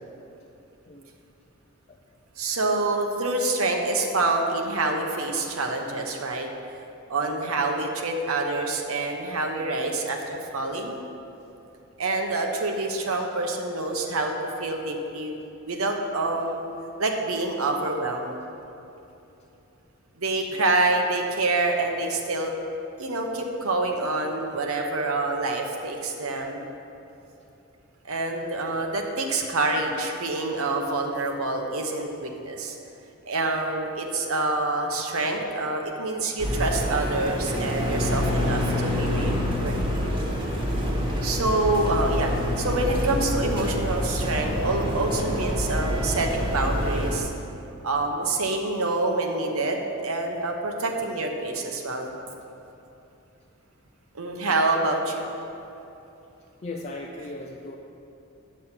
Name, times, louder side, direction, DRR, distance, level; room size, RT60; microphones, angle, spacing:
voice 1, 2.4-6.5 7.1-11.0 12.0-14.3 14.6-15.4 15.7-16.7 17.0-18.3 20.2-22.5 23.0-26.6 28.0-32.8 33.3-39.8 41.2-47.3 47.8-52.1 54.1-55.3, right 2 dB, 80° right, 2 dB, 1.0 m, -26 dB
sound 1, 36.4-47.2, left 1 dB, 20° right, 1.3 m, -27 dB
voice 2, 39.6-40.4 41.3-41.7 54.4-54.6 56.6-57.8, left 2 dB, 30° left, 0 dB, 0.5 m, -40 dB
9.2 x 6.4 x 5.8 m, 2.8 s
head